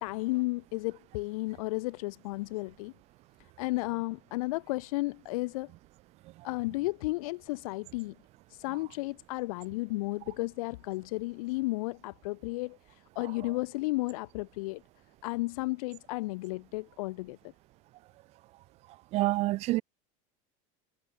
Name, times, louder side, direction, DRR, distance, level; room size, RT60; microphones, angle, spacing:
voice 1, 0.0-2.9 3.6-5.7 6.4-8.1 8.5-14.8 15.2-17.4, left 22 dB, 80° left, 1.2 m, -33 dB
voice 2, 19.1-19.8, right 18 dB, 35° right, 0.5 m, -27 dB
supercardioid pair, 155°, 18 cm